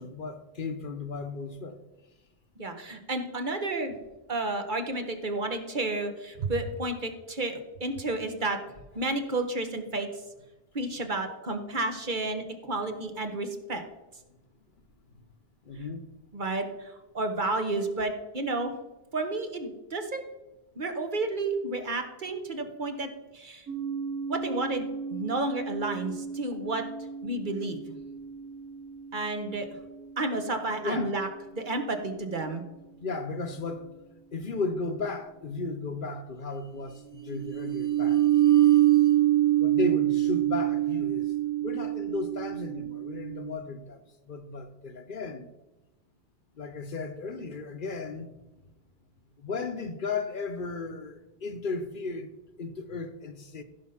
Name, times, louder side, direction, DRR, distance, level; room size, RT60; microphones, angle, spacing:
voice 1, 0.0-1.8 15.6-16.1 30.8-31.2 33.0-33.9 34.3-38.7 39.6-41.3 41.6-45.5 46.5-48.3 49.4-52.3 52.6-53.6, left 3 dB, 55° left, 0.9 m, -35 dB
voice 2, 2.6-4.0 4.3-8.6 8.9-10.1 10.7-13.8 16.3-18.7 19.1-20.2 20.8-23.7 24.3-26.8 27.2-28.0 29.1-29.7 30.2-31.3 31.5-32.6, right 2 dB, 50° right, 1.3 m, -31 dB
sound 1, 23.7-31.2 37.2-43.5, right 13 dB, 20° right, 1.3 m, -27 dB
15.5 x 5.3 x 5.7 m
omnidirectional pair, 1.1 m